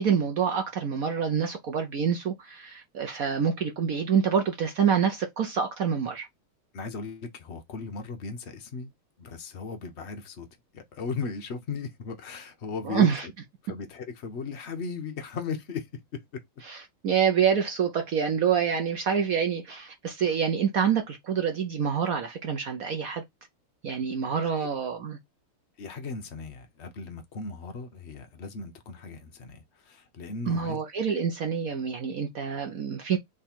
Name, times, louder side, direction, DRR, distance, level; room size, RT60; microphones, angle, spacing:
voice 1, 0.0-6.3 12.8-13.3 16.7-23.2 23.8-25.2 30.5-33.2, right 7 dB, 70° right, 0.8 m, -26 dB
voice 2, 6.7-8.9 9.2-10.5 10.7-13.3 13.6-15.9 16.1-16.4 24.4-24.7 25.8-30.8, left 4 dB, 75° left, 0.6 m, -37 dB
3.7 x 3.3 x 4.3 m
omnidirectional pair, 2.3 m